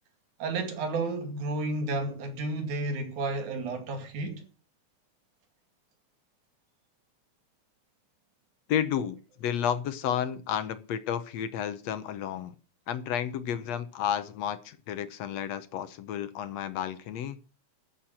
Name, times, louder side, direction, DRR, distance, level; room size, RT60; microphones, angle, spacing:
voice 1, 0.4-4.4, right 2 dB, 90° right, 3.7 m, -32 dB
voice 2, 8.7-12.6 12.9-17.4, left 9 dB, 70° left, 2.0 m, -31 dB
13.5 x 7.5 x 6.4 m
omnidirectional pair, 3.4 m